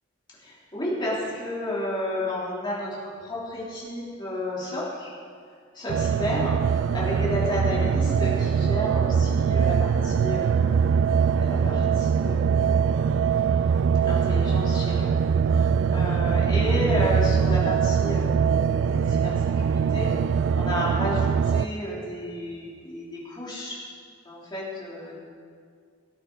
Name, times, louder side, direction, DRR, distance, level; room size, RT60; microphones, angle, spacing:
voice 1, 0.4-5.1 5.7-6.6 6.9-10.9 11.4-13.0 14.1-15.1 15.5-23.8 24.3-25.1, left 1 dB, 25° left, -7 dB, 3.5 m, -32 dB
sound 1, 5.9-21.7, right 6 dB, 70° right, 0.3 m, -22 dB
18.5 x 8.9 x 4.1 m, 2.2 s
head